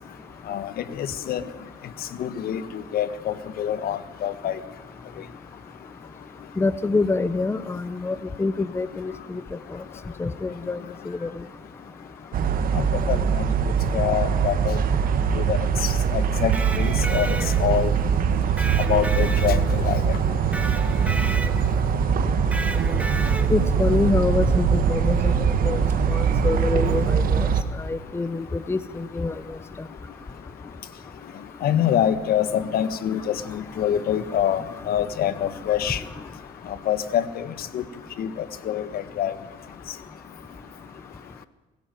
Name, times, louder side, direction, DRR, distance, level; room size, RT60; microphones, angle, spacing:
voice 1, 1.0-1.4 2.2-2.6 2.9-4.6 12.7-13.4 13.9-14.8 15.3-15.6 16.1-16.5 16.8-17.9 18.9-20.0 31.6-36.0 36.9-37.5 37.7-37.8 38.2-38.3 38.6-39.3, left 10 dB, 60° left, 13 dB, 1.5 m, -25 dB
voice 2, 6.6-9.4 10.2-10.8 11.1-11.3 23.5-27.5 27.7-29.3, left 3 dB, 15° left, 14 dB, 0.9 m, -26 dB
sound 1, 12.3-27.6, right 6 dB, 55° right, 1.6 m, -22 dB
Electric guitar, 16.4-17.9 18.6-20.0 20.5-21.8 22.5-23.7, right 1 dB, 10° right, 1.4 m, -33 dB
21.5 x 16.5 x 9.3 m, 1.1 s
cardioid pair, 110°, 17 cm